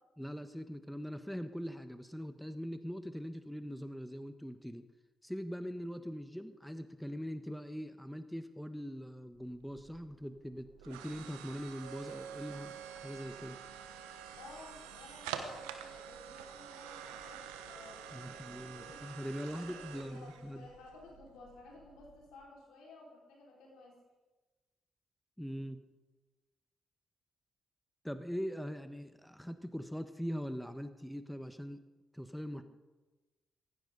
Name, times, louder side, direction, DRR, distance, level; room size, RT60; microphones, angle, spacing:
voice 1, 0.2-4.9 5.2-13.6 18.1-20.7 25.4-25.8 28.0-31.8 32.1-32.6, equal, ahead, 9 dB, 1.2 m, -42 dB
sound 1, 9.4-22.4, right 8 dB, 90° right, 1.1 m, -48 dB
voice 2, 14.3-19.0 19.5-24.0 32.5-32.6, left 3 dB, 80° left, -3 dB, 4.9 m, -55 dB
17.0 x 16.0 x 4.0 m, 1.2 s
hypercardioid pair, 45°, 0 cm